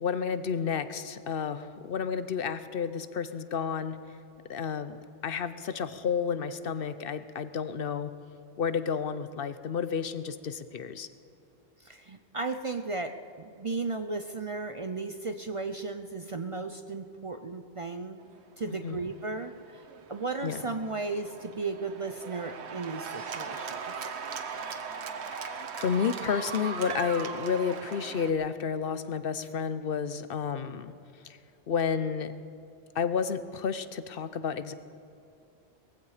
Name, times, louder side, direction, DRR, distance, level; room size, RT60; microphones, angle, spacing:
voice 1, 0.0-4.0 4.5-5.0 5.2-8.1 8.6-11.1 18.7-19.0 20.4-20.6 25.4-30.9 31.2-31.4 31.7-32.3 32.9-34.7, left 6 dB, 65° left, 13 dB, 0.8 m, -31 dB
voice 2, 11.8-18.2 18.6-19.8 20.1-23.9, right 3 dB, 40° right, 8 dB, 0.6 m, -35 dB
Cheering / Applause, 18.6-28.3, right 6 dB, 90° right, 1.2 m, -39 dB
19.0 x 15.5 x 5.0 m, 2.7 s
omnidirectional pair, 1.1 m